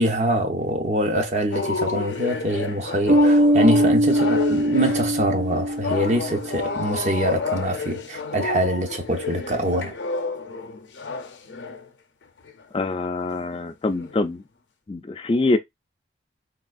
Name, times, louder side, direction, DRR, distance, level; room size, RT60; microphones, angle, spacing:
voice 1, 0.0-9.9, right 1 dB, 40° right, 0.6 m, -24 dB
sound 1, 1.5-11.9 12.4-12.6 13.2-13.6 13.9-14.2, left 4 dB, 75° left, 0.6 m, -30 dB
Bass guitar, 3.1-6.6, equal, 80° right, 0.9 m, -20 dB
voice 2, 12.7-14.4 14.9-15.6, left 2 dB, 30° left, 0.3 m, -24 dB
3.5 x 2.3 x 2.4 m
head